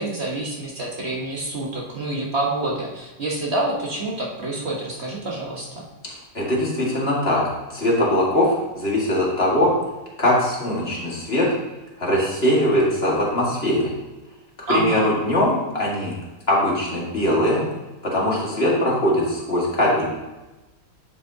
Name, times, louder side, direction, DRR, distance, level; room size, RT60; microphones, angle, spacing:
voice 1, 0.0-5.8 14.7-15.1, right 2 dB, 50° right, -2 dB, 1.5 m, -27 dB
voice 2, 6.0-7.4 7.7-9.7 10.2-11.5 12.0-13.9 14.7-16.1 16.5-17.6 18.0-20.1, left 1 dB, 45° left, -5 dB, 2.1 m, -21 dB
10.5 x 6.1 x 2.8 m, 1.1 s
omnidirectional pair, 1.5 m